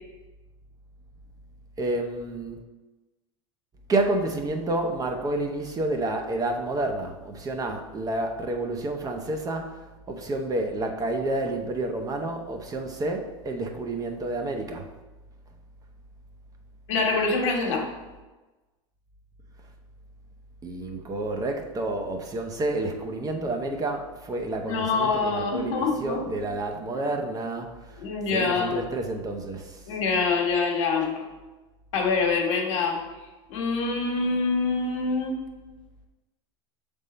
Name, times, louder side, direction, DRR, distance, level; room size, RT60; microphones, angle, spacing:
voice 1, 1.8-2.6 3.9-14.9 20.6-27.7 28.3-29.8, right 2 dB, 25° right, 3 dB, 0.8 m, -29 dB
voice 2, 16.9-17.9 24.7-26.3 26.9-27.0 28.0-28.9 29.9-31.2 31.9-33.0 33.5-35.3, left 4 dB, 75° left, 1 dB, 1.3 m, -25 dB
6.5 x 3.6 x 4.1 m, 1.2 s
hypercardioid pair, 105°, 16 cm